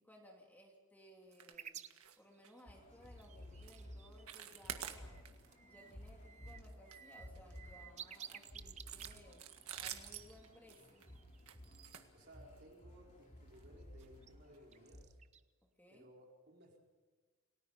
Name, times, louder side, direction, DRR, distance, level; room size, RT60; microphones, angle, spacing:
voice 1, 0.0-1.8 2.2-5.2 5.6-9.4 9.7-11.1 15.6-16.1, equal, 10° left, 0 dB, 2.8 m, -61 dB
sound 1, 1.3-1.6 1.8-2.2 2.4-2.6 3.1-3.2 3.6-3.8 4.1-5.5 5.9-6.1 6.5-7.6 8.1-12.7 13.5-13.6 14.0-14.1 14.5-14.6, right 9 dB, 85° right, 1.8 m, -50 dB
sound 2, 1.5-5.2 5.6-5.9 6.2-11.4 14.0-14.3 14.7-15.4, right 8 dB, 30° right, 0.7 m, -54 dB
sound 3, 2.7-15.0, equal, 35° left, 3.0 m, -56 dB
voice 2, 12.1-15.2 15.9-16.8, equal, 50° right, -1 dB, 4.3 m, -60 dB
28.5 x 18.5 x 5.4 m, 1.4 s
head